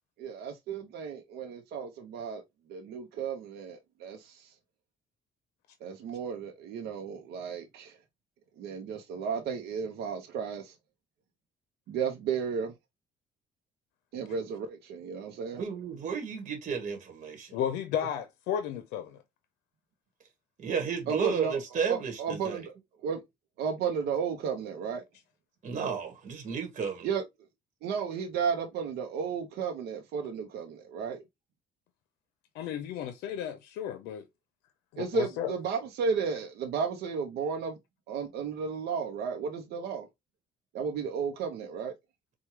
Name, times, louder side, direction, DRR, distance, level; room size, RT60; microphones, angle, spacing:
voice 1, 0.2-2.4 2.7-4.5 5.8-8.0 8.6-10.7 11.9-12.7 14.1-15.6 21.1-22.7 23.0-23.2 23.6-25.0 27.0-27.2 27.8-31.2 35.0-37.8 38.1-40.1 40.7-41.9, right 6 dB, 75° right, 0.7 m, -33 dB
voice 2, 15.6-17.5 20.6-22.6 25.6-27.1, right 6 dB, 45° right, 1.2 m, -32 dB
voice 3, 17.5-19.2 32.5-34.3 34.9-35.5, left 9 dB, 90° left, 0.6 m, -33 dB
4.5 x 2.3 x 3.0 m
cardioid pair, 110°, 17 cm